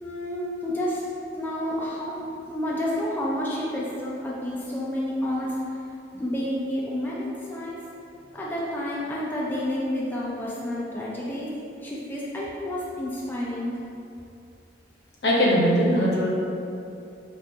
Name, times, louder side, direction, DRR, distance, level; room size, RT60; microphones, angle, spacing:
voice 1, 0.0-5.8 6.1-7.8 8.3-11.5 11.8-13.7, left 1 dB, 10° left, -6 dB, 0.4 m, -30 dB
voice 2, 15.2-16.3, equal, 70° left, -4 dB, 0.8 m, -20 dB
5.7 x 2.4 x 2.7 m, 2.7 s
head